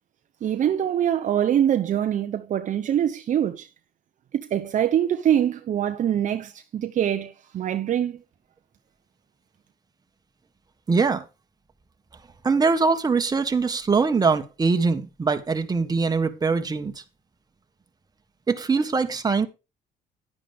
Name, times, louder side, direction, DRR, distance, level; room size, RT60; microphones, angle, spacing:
voice 1, 0.4-3.7 4.3-8.2, right 10 dB, 50° right, 0.8 m, -24 dB
voice 2, 10.9-11.2 12.4-17.0 18.5-19.5, right 4 dB, 25° right, 1.5 m, -22 dB
11.0 x 10.0 x 3.6 m
cardioid pair, 110°, 17 cm